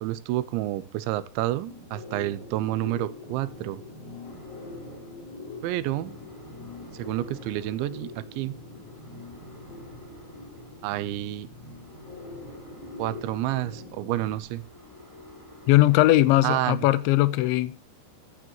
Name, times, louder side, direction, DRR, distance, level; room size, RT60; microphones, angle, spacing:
voice 1, 0.0-3.8 5.6-6.2 6.9-8.5 10.8-11.5 13.0-14.6 16.4-16.8, right 15 dB, 90° right, 3.0 m, -29 dB
sound 1, 1.7-14.4, left 3 dB, 55° left, 4.6 m, -43 dB
sound 2, 4.2-16.8, left 2 dB, 5° left, 2.2 m, -51 dB
voice 2, 15.7-17.7, left 16 dB, 85° left, 3.1 m, -19 dB
15.0 x 10.0 x 2.9 m
omnidirectional pair, 5.2 m